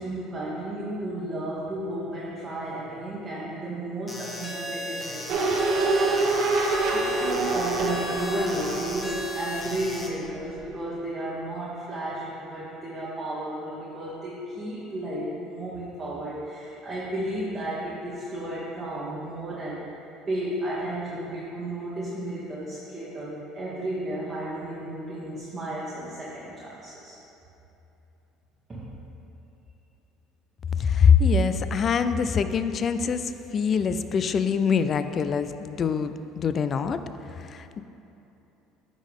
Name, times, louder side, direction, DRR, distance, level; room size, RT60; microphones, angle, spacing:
voice 1, 0.0-6.7 6.9-19.8 20.3-27.2 28.7-28.9, right 1 dB, 25° right, -8 dB, 1.2 m, -33 dB
sound 1, 4.1-10.1, left 1 dB, 15° left, 0.9 m, -36 dB
sound 2, 5.3-10.3 10.6-10.7, right 3 dB, 60° right, 0.8 m, -26 dB
voice 2, 30.8-37.0 37.3-37.8, left 6 dB, 40° left, 11 dB, 0.3 m, -24 dB
9.7 x 3.7 x 3.6 m, 3.0 s
supercardioid pair, 100°, 0 cm